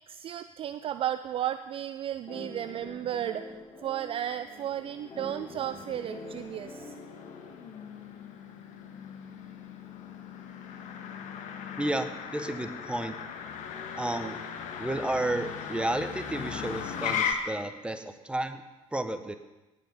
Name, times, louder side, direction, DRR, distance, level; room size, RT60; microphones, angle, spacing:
voice 1, 0.1-6.9, right 11 dB, 35° right, 12 dB, 0.4 m, -34 dB
sound 1, 2.3-7.9, left 1 dB, 25° left, 4.0 m, -46 dB
Motor vehicle (road), 4.2-17.3, left 7 dB, 45° left, 1.5 m, -38 dB
voice 2, 11.8-13.2 13.9-14.4 14.8-18.6 18.9-19.4, right 1 dB, 5° right, 9 dB, 1.1 m, -32 dB
18.5 x 7.4 x 5.4 m, 1.1 s
figure-of-eight pair, 65°, 17 cm